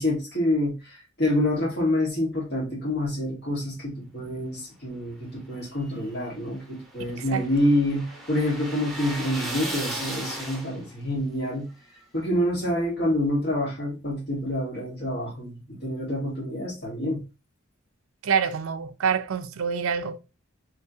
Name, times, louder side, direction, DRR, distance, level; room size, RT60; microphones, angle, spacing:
voice 1, 0.0-11.7 12.1-17.2, left 1 dB, 55° left, 2.0 m, -27 dB
sound 1, 5.6-11.0, right 1 dB, ahead, 0.9 m, -36 dB
voice 2, 18.2-20.2, right 6 dB, 80° right, 0.5 m, -26 dB
3.5 x 3.3 x 2.8 m
head